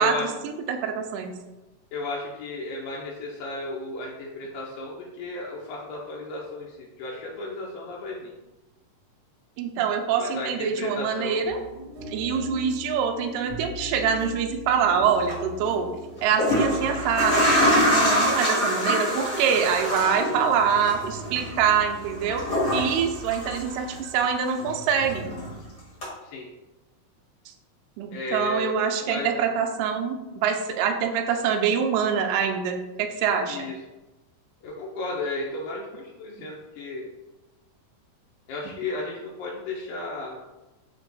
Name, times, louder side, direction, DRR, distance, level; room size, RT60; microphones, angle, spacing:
voice 1, 0.0-1.4 9.6-11.6 12.1-15.9 16.2-22.4 22.7-25.2 28.0-33.7, right 7 dB, 85° right, 3 dB, 2.1 m, -25 dB
voice 2, 1.9-8.3 10.2-11.4 23.4-23.6 26.2-26.5 28.1-28.8 29.0-29.3 33.5-33.7 34.6-37.1 38.5-40.4, left 2 dB, 85° left, -3 dB, 2.3 m, -34 dB
sound 1, 11.4-18.2, left 1 dB, 60° right, 1.9 m, -39 dB
sound 2, 15.1-15.3 16.2-24.2 24.5-25.6 26.0-26.1, equal, 45° left, 1.2 m, -25 dB
6.1 x 2.9 x 2.6 m, 1.1 s
omnidirectional pair, 3.9 m